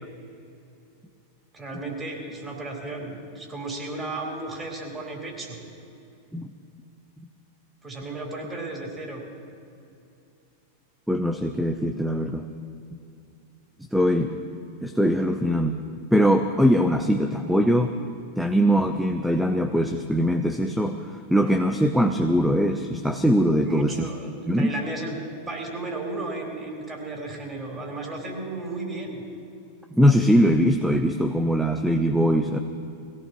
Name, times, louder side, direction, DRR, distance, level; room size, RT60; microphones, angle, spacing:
voice 1, 1.5-5.6 7.8-9.2 23.6-25.2 25.5-29.2, right 2 dB, 20° right, -1 dB, 4.0 m, -34 dB
voice 2, 11.1-12.4 13.9-14.4 14.8-15.8 16.1-17.9 18.4-24.1 24.5-24.7 29.9-32.6, equal, ahead, 6 dB, 0.7 m, -21 dB
22.0 x 17.5 x 3.1 m, 2.7 s
figure-of-eight pair, 95°, 0 cm